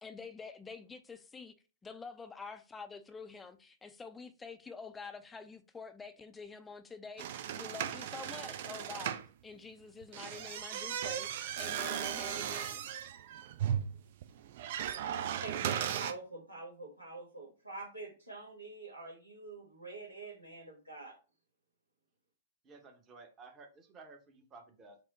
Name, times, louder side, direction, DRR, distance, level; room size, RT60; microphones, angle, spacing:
voice 1, 0.0-1.5 1.8-9.2 9.4-12.9, left 4 dB, 10° left, 0.5 m, -47 dB
sound 1, 7.2-9.3 10.0-16.1, right 10 dB, 50° right, 0.4 m, -37 dB
voice 2, 14.9-21.2, right 3 dB, 90° right, 1.2 m, -46 dB
voice 3, 22.6-25.0, right 3 dB, 25° right, 0.9 m, -54 dB
4.8 x 2.1 x 3.9 m
figure-of-eight pair, 105°, 0 cm